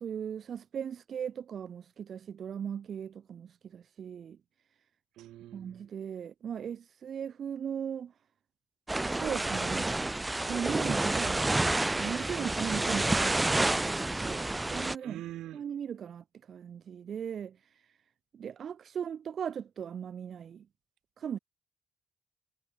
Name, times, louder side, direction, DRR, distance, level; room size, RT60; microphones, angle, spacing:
voice 1, 0.0-4.4 5.5-8.1 9.1-9.9 10.5-11.6 11.9-13.9 14.2-15.2 15.5-17.5 18.3-20.6 21.2-21.4, right 8 dB, 55° right, 1.1 m, -38 dB
voice 2, 5.2-5.8 15.0-15.6, right 14 dB, 85° right, 4.0 m, -43 dB
sound 1, 8.9-15.0, right 2 dB, 15° right, 0.7 m, -29 dB
cardioid pair, 90°, 0 cm